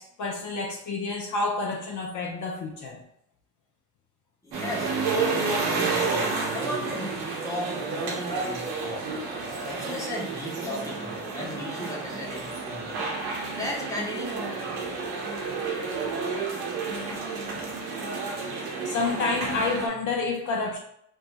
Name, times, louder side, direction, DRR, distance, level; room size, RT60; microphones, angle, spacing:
voice 1, 0.0-3.0 17.1-17.2 18.8-20.8, left 3 dB, 50° left, 0 dB, 0.5 m, -29 dB
voice 2, 4.4-7.1 7.4-9.1 9.4-13.0 13.6-14.5, equal, 10° left, -2 dB, 0.9 m, -36 dB
sound 1, 4.5-19.9, right 4 dB, 80° right, 0.7 m, -30 dB
2.6 x 2.2 x 2.4 m, 0.71 s
supercardioid pair, 55°, 38 cm